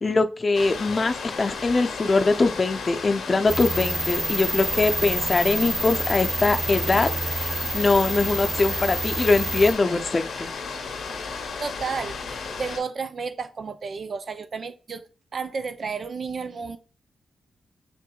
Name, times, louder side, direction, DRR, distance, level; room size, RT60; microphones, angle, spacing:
voice 1, 0.0-7.1 7.7-10.5, left 3 dB, 45° left, 0.5 m, -22 dB
sound 1, 0.5-12.8, left 5 dB, 80° left, 0.8 m, -34 dB
sound 2, 3.5-9.7, right 2 dB, 30° right, 0.8 m, -28 dB
voice 2, 11.6-15.0 15.3-16.8, right 5 dB, 60° right, 0.5 m, -32 dB
6.4 x 2.5 x 2.3 m
supercardioid pair, 40°, 0 cm